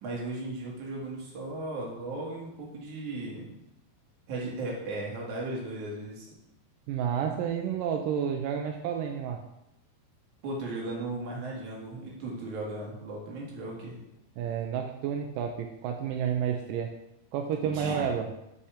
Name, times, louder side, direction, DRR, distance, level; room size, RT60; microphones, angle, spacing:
voice 1, 0.0-3.5 4.3-6.3 10.4-14.0 17.7-18.0, right 2 dB, 55° right, -3 dB, 2.8 m, -36 dB
voice 2, 6.9-9.4 14.4-16.9 17.3-18.3, right 8 dB, 85° right, 3 dB, 1.9 m, -30 dB
6.9 x 5.5 x 5.0 m, 0.85 s
omnidirectional pair, 4.6 m